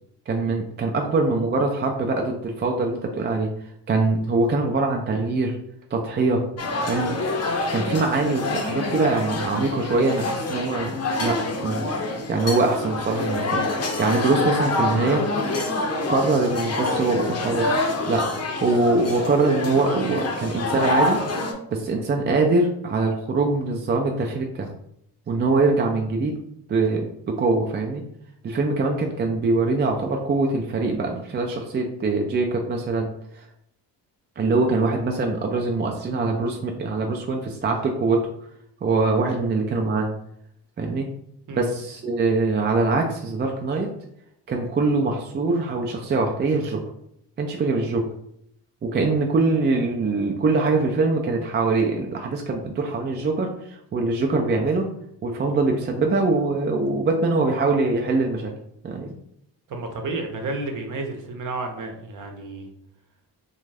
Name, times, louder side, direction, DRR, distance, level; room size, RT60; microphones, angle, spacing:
voice 1, 0.3-3.5 3.9-5.6 5.9-6.4 6.8-7.1 7.7-10.9 11.2-15.2 16.1-17.7 18.1-21.2 21.7-24.7 25.3-26.3 26.7-28.0 28.4-33.1 33.4-33.5 34.4-38.3 38.8-40.1 40.8-41.1 41.6-43.9 44.5-46.8 47.4-48.1 48.8-54.9 55.2-58.5 58.8-59.1, right 3 dB, 25° right, 2 dB, 0.4 m, -23 dB
sound 1, 6.6-21.5, left 2 dB, 40° left, 0.6 m, -26 dB
voice 2, 59.7-62.7, right 2 dB, 50° right, 3 dB, 0.8 m, -31 dB
2.5 x 2.3 x 3.2 m, 0.73 s
cardioid pair, 80°, 41 cm